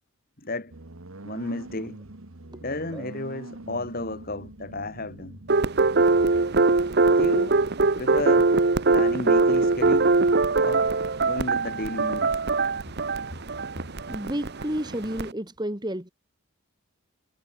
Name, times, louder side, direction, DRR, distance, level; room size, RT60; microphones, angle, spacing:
voice 1, 0.4-0.7 1.2-2.0 2.6-5.4 7.1-7.6 8.0-8.6 8.9-10.2 10.6-10.9 11.2-12.4, left 2 dB, 40° left, 3.0 m, -33 dB
sound 1, 0.7-14.2, right 1 dB, 65° right, 1.7 m, -46 dB
sound 2, 5.5-15.3, right 3 dB, 50° right, 0.9 m, -22 dB
voice 2, 14.1-16.1, right 1 dB, 20° right, 2.7 m, -31 dB
head